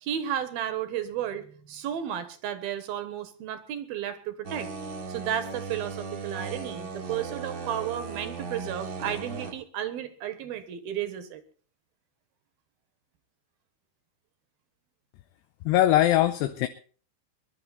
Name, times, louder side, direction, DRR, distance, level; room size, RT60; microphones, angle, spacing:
voice 1, 0.0-4.7 5.1-11.4, right 10 dB, 65° right, 11 dB, 3.0 m, -33 dB
sound 1, 4.4-9.5, right 4 dB, 40° right, 1.8 m, -37 dB
voice 2, 15.7-16.7, left 13 dB, 80° left, 9 dB, 2.8 m, -21 dB
22.5 x 11.5 x 4.1 m, 0.41 s
omnidirectional pair, 5.0 m